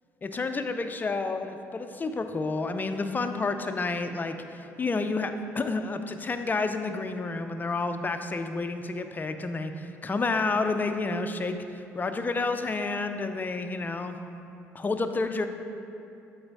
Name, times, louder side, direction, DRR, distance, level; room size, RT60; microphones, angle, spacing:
voice 1, 0.2-14.2 14.7-15.5, left 3 dB, 25° left, 8 dB, 0.5 m, -30 dB
7.8 x 4.0 x 4.1 m, 2.7 s
hypercardioid pair, 55°, 7 cm